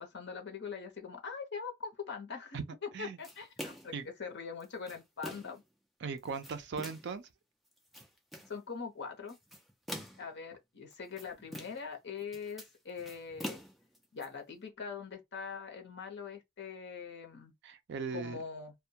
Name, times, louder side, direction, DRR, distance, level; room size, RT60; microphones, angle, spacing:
voice 1, 0.0-5.6 8.5-9.4 10.2-13.6 14.1-17.5 18.1-18.7, left 5 dB, 55° left, 0.7 m, -42 dB
sound 1, 3.2-4.0 4.6-5.6 6.2-7.2 7.7-8.6 9.3-10.3 10.9-11.9 12.2-14.3, equal, ahead, 0.5 m, -45 dB
voice 2, 6.0-7.2 17.6-18.4, right 5 dB, 55° right, 0.4 m, -38 dB
2.1 x 2.1 x 2.7 m
head